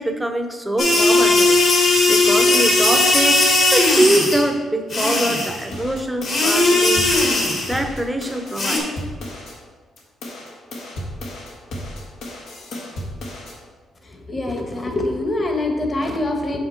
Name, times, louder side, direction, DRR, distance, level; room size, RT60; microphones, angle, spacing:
voice 1, 0.0-7.1 7.6-8.8, right 1 dB, 5° right, 5 dB, 0.8 m, -23 dB
sound 1, 0.8-4.5 4.9-5.6 6.2-7.8 8.6-8.8, left 2 dB, 55° left, 1.9 m, -17 dB
sound 2, 5.7-9.6 10.0-13.6, left 1 dB, 85° left, 1.6 m, -34 dB
voice 2, 14.0-16.6, left 2 dB, 30° left, 3 dB, 1.2 m, -24 dB
5.7 x 5.3 x 4.5 m, 1.5 s
cardioid pair, 90°, 0 cm